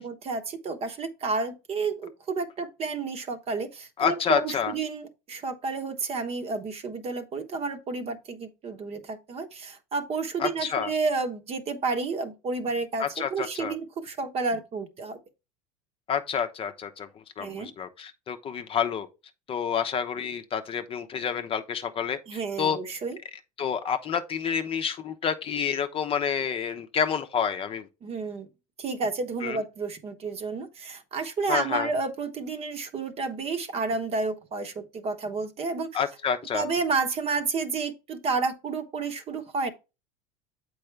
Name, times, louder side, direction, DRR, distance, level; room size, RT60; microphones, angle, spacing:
voice 1, 0.0-15.2 17.4-17.7 22.3-23.2 28.0-28.5 28.8-36.0 36.5-39.7, right 4 dB, 35° right, 1.1 m, -31 dB
voice 2, 4.0-4.7 10.4-10.9 13.0-13.7 16.1-17.1 17.4-19.1 19.5-22.8 23.6-27.9 29.4-29.6 31.5-31.9 35.9-36.6, left 7 dB, 30° left, 0.7 m, -28 dB
7.7 x 4.8 x 3.3 m
supercardioid pair, 105°, 18 cm